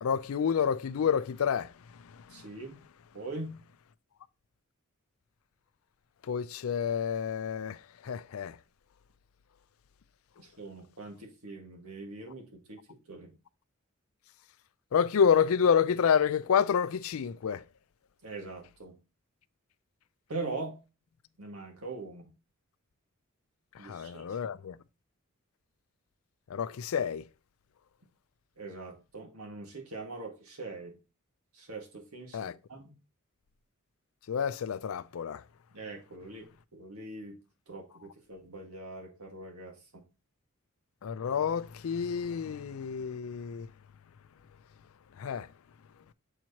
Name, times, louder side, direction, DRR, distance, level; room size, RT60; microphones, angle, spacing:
voice 1, 0.0-1.7 6.3-7.8 8.0-8.6 14.9-17.6 23.8-24.8 26.5-27.2 32.3-32.5 34.3-35.4 41.0-43.7 45.2-45.5, left 7 dB, 70° left, 0.4 m, -28 dB
voice 2, 2.3-2.8 3.1-3.6 10.4-13.4 18.2-19.0 20.3-20.8 21.4-22.3 23.8-24.4 28.6-31.0 31.5-32.9 35.7-37.4 37.7-40.0, right 3 dB, 85° right, 1.8 m, -42 dB
7.4 x 4.5 x 2.8 m
head